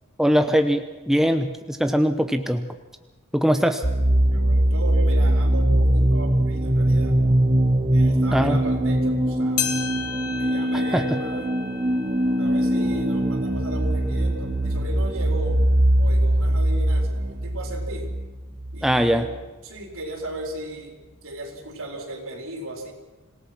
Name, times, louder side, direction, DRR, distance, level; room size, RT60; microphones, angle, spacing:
voice 1, 0.2-2.7 3.3-3.8 8.3-8.6 10.9-11.0 18.8-19.3, equal, ahead, 7 dB, 0.9 m, -21 dB
voice 2, 3.5-4.0 4.3-7.2 7.9-9.9 10.4-11.4 12.4-15.6 16.0-18.1 18.7-19.3 19.6-22.9, right 1 dB, 65° right, 2 dB, 4.5 m, -36 dB
sound 1, 3.8-19.4, right 1 dB, 25° right, 1.1 m, -21 dB
sound 2, 9.6-14.2 14.7-14.8 15.6-15.7 16.7-16.8, left 8 dB, 85° left, 1.9 m, -34 dB
26.5 x 18.0 x 6.1 m, 1.2 s
head